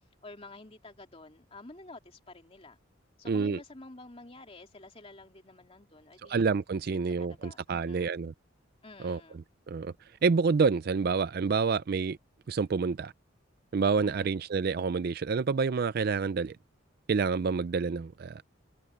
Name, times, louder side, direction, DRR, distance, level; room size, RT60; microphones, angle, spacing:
voice 1, 0.2-2.8 3.2-6.5 7.2-8.2 8.8-9.4 14.0-14.4, left 2 dB, 30° left, 2.7 m, -50 dB
voice 2, 3.3-3.6 6.2-8.3 9.0-9.2 9.7-9.9 10.2-12.2 12.5-13.1 13.7-16.6 17.1-18.4, right 5 dB, 50° right, 0.4 m, -28 dB
head